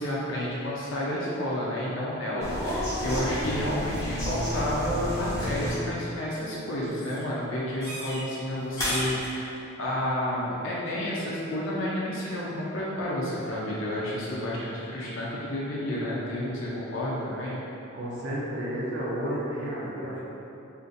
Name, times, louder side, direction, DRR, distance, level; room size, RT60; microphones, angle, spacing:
voice 1, 0.0-17.6, left 1 dB, 65° left, -7 dB, 0.5 m, -30 dB
sound 1, 2.4-5.9 6.2-6.6 6.9-7.2 7.8-8.2 8.8-9.3, equal, 15° left, 0.8 m, -31 dB
voice 2, 17.9-20.3, equal, 55° right, -6 dB, 0.5 m, -32 dB
2.5 x 2.5 x 3.8 m, 2.9 s
head